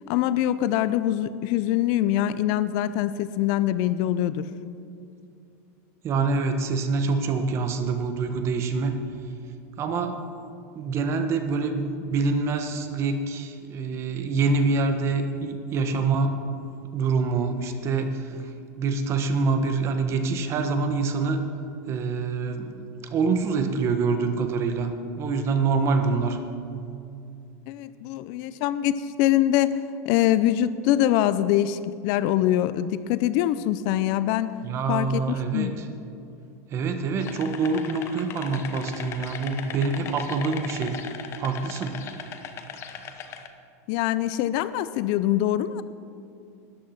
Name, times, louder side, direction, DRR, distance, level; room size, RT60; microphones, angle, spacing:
voice 1, 0.1-4.5 27.7-29.8 30.0-34.5 34.9-35.3 35.5-35.7 43.9-45.8, left 12 dB, 50° left, 15 dB, 0.5 m, -24 dB
voice 2, 6.0-9.0 9.8-10.2 10.7-16.3 16.9-18.4 18.8-21.4 21.9-24.9 25.2-26.4 34.6-35.9 36.7-40.9 41.4-42.0, right 4 dB, 35° right, 7 dB, 1.2 m, -25 dB
sound 1, 37.2-43.5, left 7 dB, 30° left, 0.9 m, -38 dB
13.0 x 9.9 x 5.9 m, 2.5 s
supercardioid pair, 145°, 8 cm